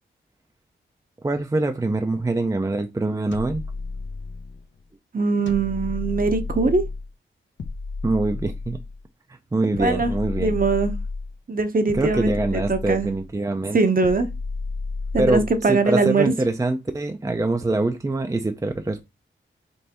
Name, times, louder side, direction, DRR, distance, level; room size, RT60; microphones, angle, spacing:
voice 1, 1.2-3.6 8.0-8.8 9.5-10.5 11.9-13.8 15.2-19.0, right 2 dB, 15° right, 0.5 m, -24 dB
sound 1, 3.3-4.6 5.5-7.1 7.6-9.0 9.7-11.3 11.9-13.3 14.0-15.6, left 3 dB, 65° left, 0.7 m, -31 dB
voice 2, 5.1-6.8 9.8-10.1 10.4-10.9 11.5-13.1 13.7-14.3 15.1-16.3, right 3 dB, 45° right, 0.8 m, -21 dB
5.4 x 3.2 x 2.9 m
wide cardioid pair, 95°, 21 cm